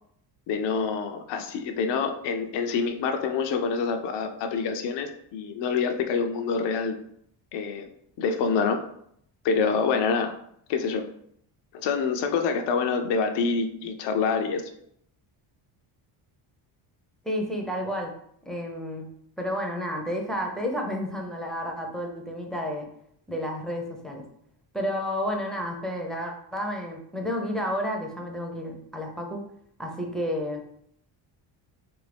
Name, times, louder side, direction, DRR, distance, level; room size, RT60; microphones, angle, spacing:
voice 1, 0.5-7.0 7.5-7.9 8.2-8.8 9.4-10.3 10.7-11.1 11.7-14.6, left 5 dB, 60° left, 6 dB, 0.5 m, -26 dB
voice 2, 17.2-18.2 18.5-19.1 19.4-22.9 23.3-24.2 24.7-29.4 29.8-30.7, equal, ahead, 1 dB, 0.5 m, -31 dB
2.7 x 2.6 x 3.3 m, 0.70 s
cardioid pair, 85°, 48 cm